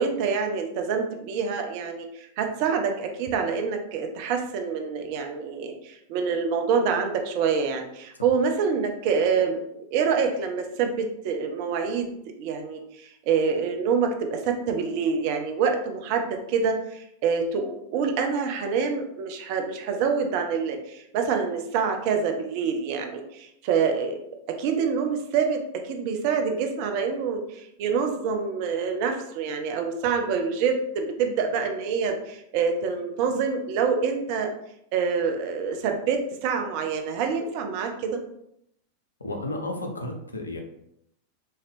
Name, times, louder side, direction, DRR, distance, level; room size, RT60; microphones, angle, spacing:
voice 1, 0.0-9.6 9.9-12.1 12.4-24.2 24.6-34.5 34.9-38.2, right 5 dB, 45° right, 4 dB, 0.6 m, -26 dB
voice 2, 39.2-40.6, left 1 dB, 75° left, 3 dB, 0.6 m, -33 dB
3.7 x 2.9 x 3.1 m, 0.77 s
figure-of-eight pair, 90°, 0 cm